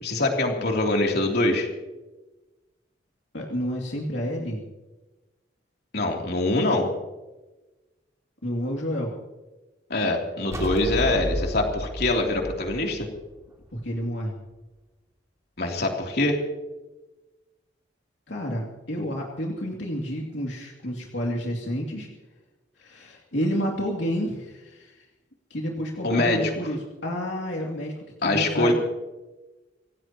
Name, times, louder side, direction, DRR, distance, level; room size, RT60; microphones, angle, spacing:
voice 1, 0.0-1.7 5.9-6.9 9.9-13.1 15.6-16.4 26.0-26.5 28.2-28.7, left 2 dB, 60° left, 1 dB, 3.2 m, -24 dB
voice 2, 3.3-4.6 8.4-9.1 13.7-14.3 18.3-22.1 22.8-25.1 25.5-27.9 28.2-28.7, equal, 75° left, -1 dB, 2.7 m, -30 dB
sound 1, 10.5-14.0, equal, 20° right, 2.7 m, -32 dB
27.0 x 17.0 x 3.0 m, 1.1 s
head